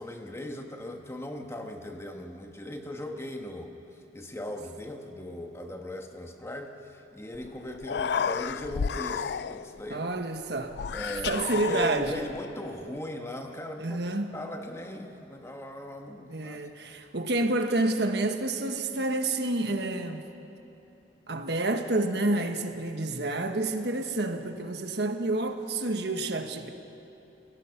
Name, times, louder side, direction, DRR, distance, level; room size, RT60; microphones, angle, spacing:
voice 1, 0.0-3.7 4.1-10.1 10.9-14.0 14.3-16.6 17.0-17.1, left 1 dB, 15° left, 4 dB, 1.4 m, -38 dB
Human voice, 7.3-7.5 7.7-9.8 10.7-12.4, left 6 dB, 65° left, 0.4 m, -32 dB
voice 2, 9.9-10.8 11.3-12.2 13.8-14.3 16.3-20.2 21.3-26.7, right 2 dB, 70° right, 6 dB, 1.4 m, -29 dB
29.5 x 17.5 x 5.9 m, 2.8 s
head